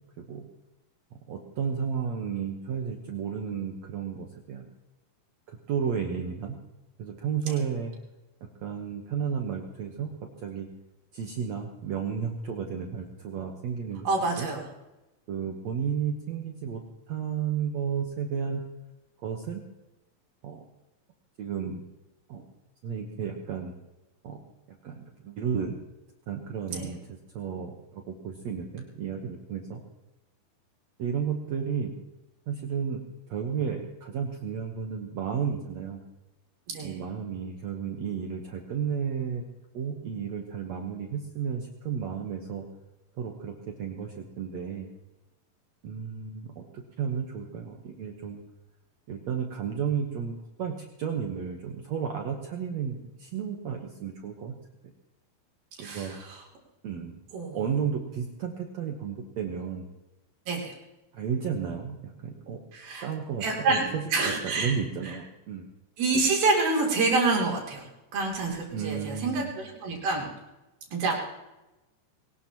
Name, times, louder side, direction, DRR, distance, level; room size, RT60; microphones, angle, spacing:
voice 1, 1.1-4.7 5.5-6.6 7.0-7.9 8.6-10.1 10.4-10.7 11.1-14.1 14.4-14.5 15.3-16.8 17.1-18.6 19.2-19.6 20.4-20.6 21.4-21.8 22.3-22.5 22.8-23.7 24.2-24.4 24.7-25.8 26.3-29.8 31.0-31.9 32.5-36.0 36.8-39.5 39.7-42.7 43.2-44.9 45.8-48.4 49.1-54.5 55.8-56.2 56.8-57.1 57.5-59.9 61.1-62.6 63.0-65.7 68.7-69.5, right 7 dB, 65° right, 2 dB, 2.0 m, -33 dB
voice 2, 14.0-14.6 26.7-26.9 36.7-36.9 55.8-56.4 57.3-57.6 60.5-60.7 62.7-63.1 63.4-64.7 65.0-65.2 66.0-67.9 68.1-70.3 70.9-71.2, right 3 dB, 85° right, -1 dB, 5.0 m, -27 dB
22.5 x 19.0 x 3.0 m, 1.0 s
omnidirectional pair, 4.1 m